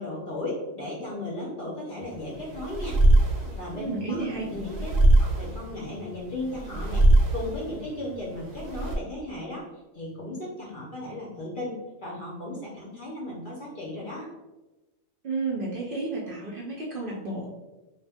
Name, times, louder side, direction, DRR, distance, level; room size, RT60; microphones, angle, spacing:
voice 1, 0.0-3.0 3.6-4.9 5.2-7.0 7.3-9.6 9.9-14.3, left 1 dB, 55° left, -4 dB, 0.6 m, -36 dB
sound 1, 2.0-9.0, right 1 dB, 85° right, 1.0 m, -23 dB
voice 2, 3.7-4.4 15.2-17.5, right 3 dB, 60° right, -5 dB, 0.6 m, -31 dB
2.3 x 2.1 x 3.3 m, 1.1 s
omnidirectional pair, 1.3 m